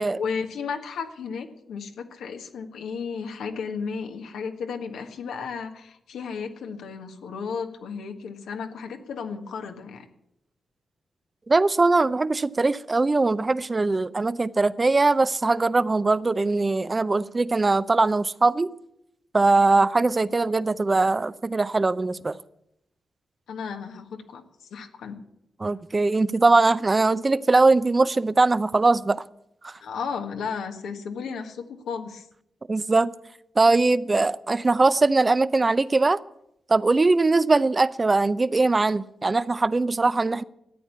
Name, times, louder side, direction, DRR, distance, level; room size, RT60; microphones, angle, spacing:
voice 1, 0.2-10.1 23.5-25.2 29.8-32.3, left 6 dB, 90° left, 5 dB, 1.6 m, -34 dB
voice 2, 11.5-18.7 19.3-22.4 25.6-29.2 29.6-29.8 32.7-33.1 33.6-36.2 36.7-40.4, right 3 dB, 30° right, 17 dB, 0.6 m, -21 dB
13.5 x 8.9 x 8.4 m, 0.80 s
cardioid pair, 70°, 0 cm